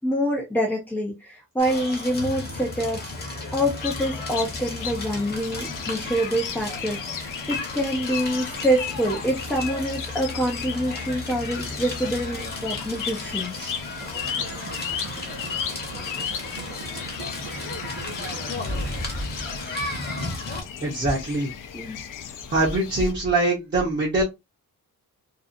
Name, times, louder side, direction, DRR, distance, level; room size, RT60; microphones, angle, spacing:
voice 1, 0.0-13.6 21.7-22.0, equal, 5° left, 0.4 m, -26 dB
Crackle, 1.6-20.6, left 2 dB, 30° left, 0.8 m, -34 dB
sound 1, 3.8-23.1, left 8 dB, 65° left, 0.5 m, -36 dB
sound 2, 14.0-19.0, right 5 dB, 60° right, 0.7 m, -42 dB
voice 2, 18.6-19.3 20.8-21.5 22.5-24.2, right 2 dB, 35° right, 0.8 m, -24 dB
2.6 x 2.3 x 2.4 m
wide cardioid pair, 170°, 34 cm